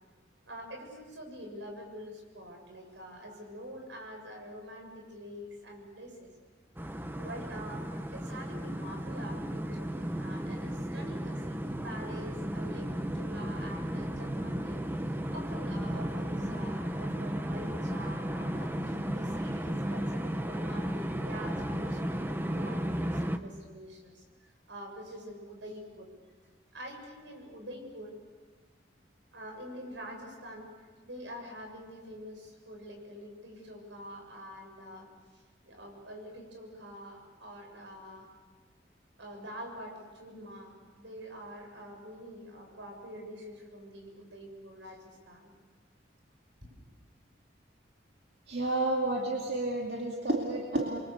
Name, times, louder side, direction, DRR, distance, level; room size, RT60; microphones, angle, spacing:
voice 1, 0.5-6.3 7.2-14.8 15.3-26.1 26.7-28.1 29.3-35.1 35.3-38.3 39.2-45.5, equal, 80° right, 2 dB, 7.3 m, -46 dB
sound 1, 6.8-23.4, equal, 10° right, 1.1 m, -34 dB
voice 2, 48.5-51.0, right 2 dB, 60° right, 0 dB, 2.4 m, -30 dB
29.0 x 23.5 x 6.8 m, 1.4 s
head